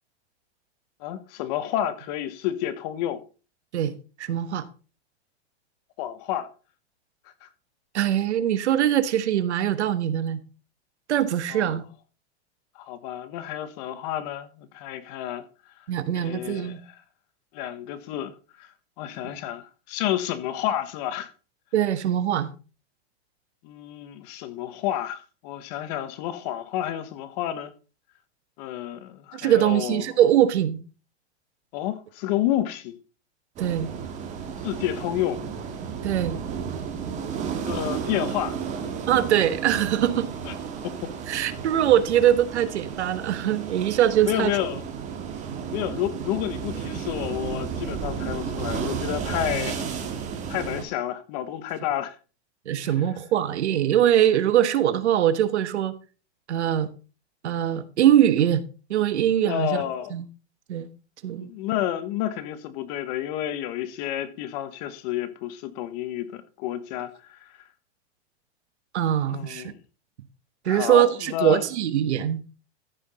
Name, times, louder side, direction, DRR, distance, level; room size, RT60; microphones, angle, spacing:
voice 1, 1.0-3.2 6.0-6.5 7.4-7.5 11.5-11.8 12.7-15.5 16.1-17.0 17.5-18.7 19.0-21.3 23.6-27.7 28.6-30.1 31.7-33.0 34.6-35.4 37.7-38.5 40.4-40.5 40.8-41.1 44.3-44.8 45.7-49.9 50.5-52.2 52.8-52.9 59.4-60.1 61.4-67.5 69.3-69.8 70.6-71.6, left 12 dB, 35° left, 1.1 m, -30 dB
voice 2, 3.7-4.6 7.9-10.4 11.1-11.8 15.9-16.8 21.7-22.5 29.3-30.8 33.6-33.9 36.0-36.4 39.1-40.3 41.3-44.6 52.7-55.9 56.5-56.9 57.4-58.6 58.9-59.8 60.1-60.2 60.7-60.9 61.2-61.5 68.9-69.7 70.6-72.4, right 11 dB, 85° right, 1.3 m, -22 dB
sound 1, 33.6-50.8, right 7 dB, 20° right, 1.7 m, -33 dB
14.0 x 5.9 x 4.2 m
supercardioid pair, 160°, 33 cm